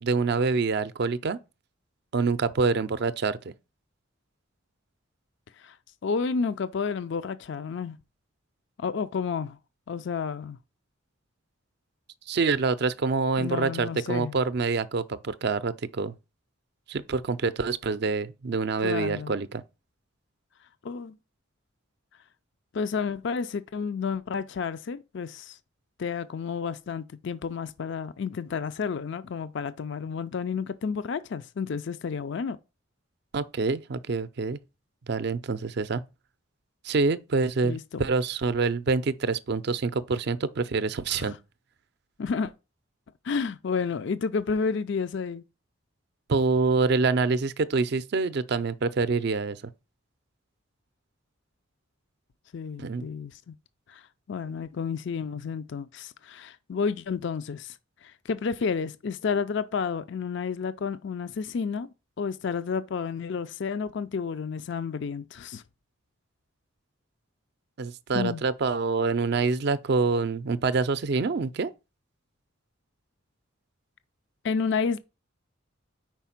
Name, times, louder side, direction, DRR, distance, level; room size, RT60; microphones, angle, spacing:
voice 1, 0.0-1.4 2.1-3.4 12.3-16.1 16.9-19.6 33.3-34.6 35.1-36.0 36.8-41.4 46.3-49.6 52.8-53.1 67.8-71.7, right 4 dB, 55° right, 0.4 m, -26 dB
voice 2, 6.0-8.0 8.8-9.6 9.9-10.6 13.4-14.4 18.8-19.3 20.8-21.2 22.7-25.6 26.0-32.6 37.6-38.1 41.1-41.4 42.2-42.5 43.2-45.4 52.5-53.5 53.9-54.0 54.3-57.8 58.0-61.9 62.2-65.6 68.1-68.4 74.4-75.0, left 5 dB, 60° left, 0.4 m, -31 dB
4.9 x 4.6 x 5.8 m
head